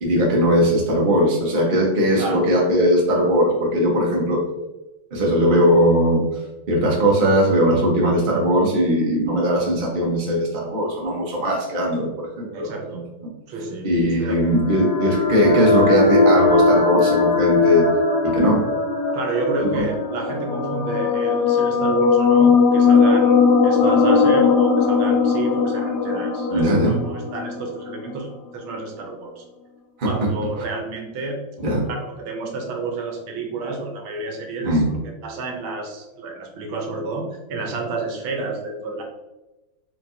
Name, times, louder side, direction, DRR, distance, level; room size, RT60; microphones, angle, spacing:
voice 1, 0.0-4.4 5.1-6.2 6.7-12.7 13.8-17.9 18.2-18.6 19.6-19.9 26.5-26.9 30.0-30.1 31.6-31.9 34.6-34.9, equal, 40° right, -2 dB, 0.7 m, -19 dB
voice 2, 12.5-13.1 13.5-13.9 14.2-14.4 19.1-29.4 30.0-31.4 31.9-39.0, right 3 dB, 70° right, 2 dB, 1.5 m, -29 dB
sound 1, 14.4-28.0, left 4 dB, 65° left, 0.9 m, -19 dB
4.4 x 4.0 x 2.6 m, 1.0 s
omnidirectional pair, 2.4 m